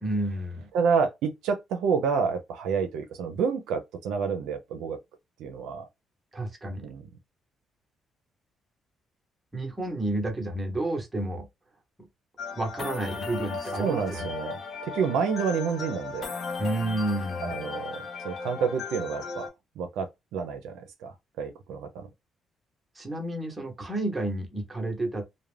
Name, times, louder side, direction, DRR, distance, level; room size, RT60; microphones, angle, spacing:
voice 1, 0.0-0.7 6.3-6.9 9.5-11.5 12.6-14.3 16.6-17.6 23.0-25.2, right 1 dB, 20° right, 0.9 m, -30 dB
voice 2, 0.7-5.0 5.4-5.9 6.8-7.0 13.8-16.3 17.4-19.5 19.8-22.1, right 6 dB, 90° right, 0.4 m, -29 dB
sound 1, 12.4-19.5, left 5 dB, 50° left, 0.6 m, -36 dB
2.3 x 2.1 x 3.1 m
cardioid pair, 90°, 0 cm